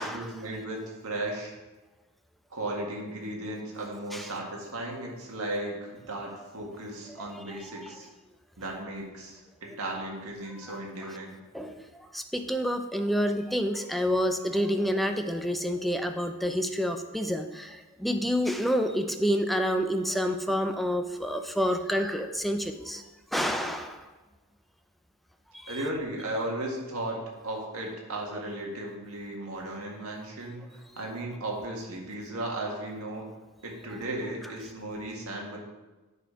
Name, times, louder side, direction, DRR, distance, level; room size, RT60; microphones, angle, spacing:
voice 1, 0.0-1.5 2.5-8.1 8.6-11.4 13.0-13.1 14.5-14.6 25.7-33.3 33.6-35.6, right 1 dB, 70° right, -1 dB, 1.8 m, -36 dB
voice 2, 12.1-23.0 23.3-24.0 25.6-25.8, equal, ahead, 6 dB, 0.5 m, -28 dB
9.2 x 4.2 x 5.0 m, 1.1 s
head